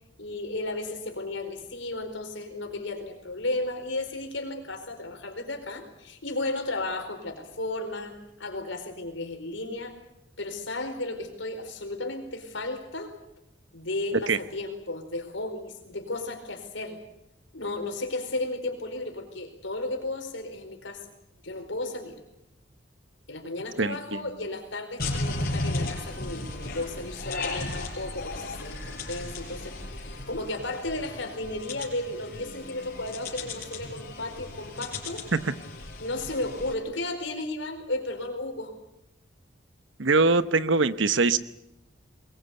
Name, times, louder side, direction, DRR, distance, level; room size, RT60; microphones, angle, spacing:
voice 1, 0.2-9.9 10.4-13.1 13.7-17.0 17.5-21.0 21.4-22.2 23.3-35.3 36.0-38.7, left 2 dB, 75° left, 5 dB, 4.6 m, -34 dB
voice 2, 23.8-24.2 35.3-35.5 40.0-41.4, right 3 dB, 75° right, 14 dB, 1.0 m, -23 dB
sound 1, 25.0-36.7, left 2 dB, 50° left, 5.0 m, -35 dB
22.5 x 21.5 x 8.3 m, 0.85 s
head